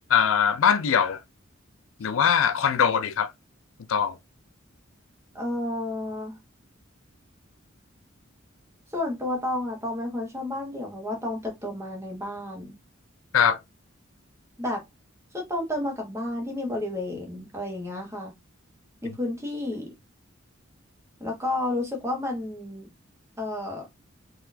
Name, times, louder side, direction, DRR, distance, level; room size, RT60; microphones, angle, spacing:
voice 1, 0.1-1.2 2.0-3.3 3.9-4.2 13.3-13.6 19.1-19.2, left 7 dB, 75° left, 0.4 m, -22 dB
voice 2, 5.3-6.4 8.9-12.7 14.6-14.8 15.3-18.3 19.0-19.9 21.2-22.9 23.4-23.9, left 1 dB, 15° right, 1.2 m, -31 dB
4.0 x 2.8 x 2.7 m
head